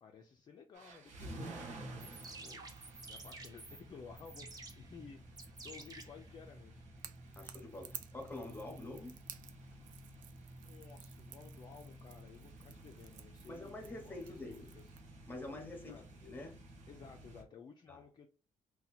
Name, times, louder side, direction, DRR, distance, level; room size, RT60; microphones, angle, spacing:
voice 1, 0.0-2.7 3.0-6.9 10.5-14.9 15.7-16.1 16.9-18.3, left 6 dB, 30° left, 0.4 m, -55 dB
sound 1, 0.7-17.4, right 1 dB, 60° right, 0.9 m, -52 dB
sound 2, 1.9-6.9, right 3 dB, 25° right, 0.6 m, -52 dB
Crackle / Crack, 7.0-15.1, right 10 dB, 75° right, 0.4 m, -55 dB
voice 2, 7.4-9.2 13.5-14.7 15.3-16.6 17.9-18.0, left 2 dB, 15° left, 0.8 m, -46 dB
2.8 x 2.2 x 4.1 m
cardioid pair, 150°, 14 cm